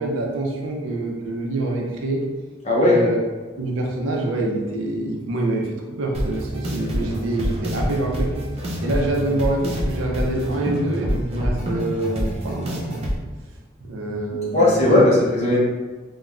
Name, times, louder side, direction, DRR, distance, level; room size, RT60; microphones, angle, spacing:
voice 1, 0.0-2.2 2.8-3.2 3.6-8.3 8.8-13.1 13.8-15.1, right 2 dB, 90° right, 0 dB, 0.5 m, -26 dB
voice 2, 2.6-3.0 14.5-15.6, left 2 dB, 35° left, -4 dB, 0.7 m, -17 dB
sound 1, 6.1-13.2, equal, 30° right, 0.5 m, -27 dB
3.1 x 2.2 x 2.4 m, 1.3 s
head